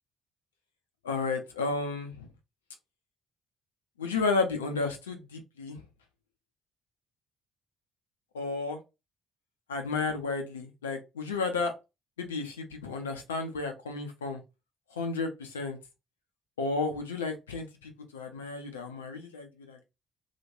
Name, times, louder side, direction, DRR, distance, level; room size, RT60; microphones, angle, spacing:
voice 1, 1.0-2.3 4.0-5.8 8.3-8.8 9.7-11.7 12.2-14.4 14.9-15.8 16.6-19.8, left 4 dB, 75° left, 5 dB, 0.4 m, -32 dB
3.0 x 2.4 x 2.7 m, 0.25 s
figure-of-eight pair, 45°, 0 cm